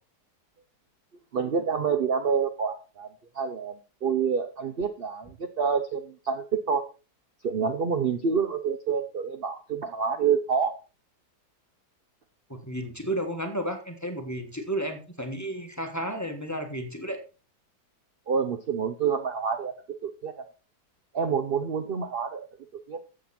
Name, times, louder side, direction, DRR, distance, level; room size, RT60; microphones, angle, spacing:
voice 1, 1.3-3.1 3.3-3.7 4.0-6.8 7.4-10.7 18.3-19.7 20.0-20.4 21.1-22.5 22.9-23.0, right 6 dB, 50° right, 9 dB, 0.7 m, -27 dB
voice 2, 12.5-17.2, right 1 dB, 10° left, 5 dB, 1.3 m, -32 dB
13.5 x 7.6 x 4.3 m, 0.34 s
omnidirectional pair, 1.8 m